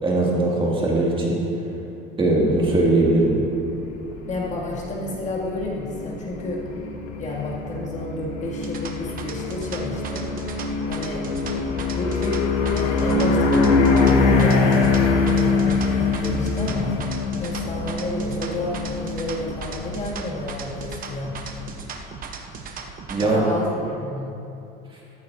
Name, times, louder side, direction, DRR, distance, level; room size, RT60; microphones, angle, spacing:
voice 1, 0.0-1.4 2.2-3.4 23.1-23.4, right 2 dB, 25° right, -4 dB, 2.3 m, -20 dB
sound 1, 2.5-21.8, left 4 dB, 85° left, 1.5 m, -24 dB
voice 2, 4.3-6.6 7.2-10.3 10.9-11.3 11.5-11.7 12.0-12.4 12.7-16.9 17.4-21.3 23.2-24.3, left 2 dB, 35° left, -4 dB, 2.4 m, -30 dB
sound 2, 8.5-23.3, right 5 dB, 40° right, 1.0 m, -37 dB
14.0 x 13.0 x 2.7 m, 2.8 s
cardioid pair, 115°, 21 cm